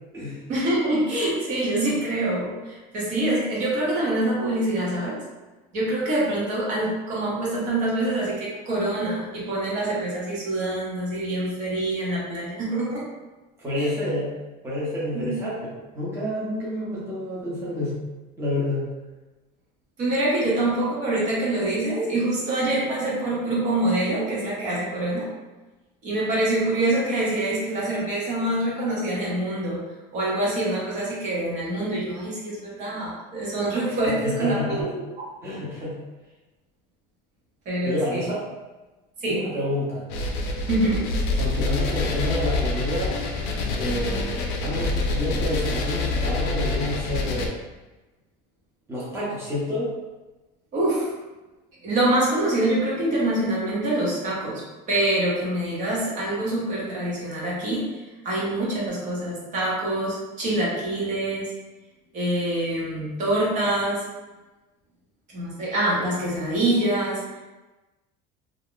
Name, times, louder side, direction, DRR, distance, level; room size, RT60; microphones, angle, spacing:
voice 1, 0.5-5.2 5.7-13.1 13.8-13.9 15.1-15.4 20.0-25.3 26.0-29.8 30.1-34.9 37.7-38.3 39.2-39.5 40.7-41.1 50.7-51.2 51.8-54.6 54.9-61.5 62.1-64.0 65.3-67.4, right 1 dB, 45° right, -6 dB, 0.8 m, -25 dB
voice 2, 13.6-14.3 14.6-15.6 15.9-18.0 18.4-18.8 34.4-34.9 35.4-35.9 37.8-38.4 39.3-40.0 41.4-43.2 43.6-44.4 44.6-47.5 48.9-49.9, left 1 dB, 15° right, -9 dB, 0.8 m, -29 dB
sound 1, 40.1-47.5, left 2 dB, 65° left, 0.5 m, -26 dB
2.4 x 2.1 x 3.6 m, 1.1 s
cardioid pair, 165°, 19 cm